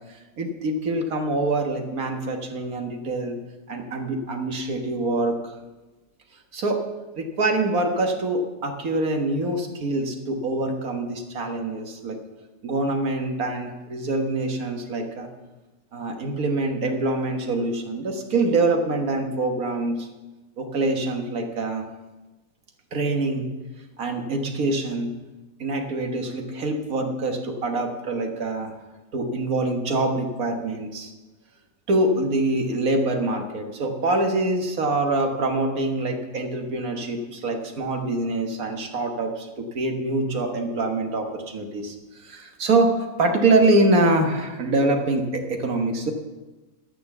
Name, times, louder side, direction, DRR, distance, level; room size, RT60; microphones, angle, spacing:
voice 1, 0.1-3.4 3.7-5.6 6.5-6.9 7.2-12.2 12.6-15.3 15.9-20.1 20.6-21.8 22.9-23.5 24.0-25.1 25.6-28.7 29.1-31.1 31.9-46.1, right 2 dB, 90° right, 4 dB, 1.8 m, -25 dB
12.5 x 6.4 x 7.0 m, 1.1 s
omnidirectional pair, 1.5 m